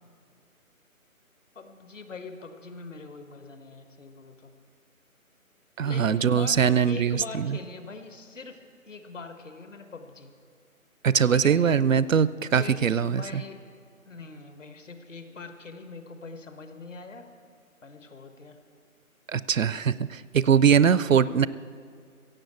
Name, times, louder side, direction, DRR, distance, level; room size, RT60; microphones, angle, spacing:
voice 1, 1.5-4.5 5.8-8.6 8.8-10.3 11.3-11.6 12.6-13.6 14.1-17.3 17.8-18.6 21.2-21.5, left 3 dB, 60° left, 8 dB, 1.4 m, -42 dB
voice 2, 5.8-7.5 11.0-13.4 19.3-21.5, right 7 dB, 65° right, 18 dB, 0.5 m, -22 dB
15.5 x 7.6 x 8.2 m, 2.2 s
figure-of-eight pair, 160°, 43 cm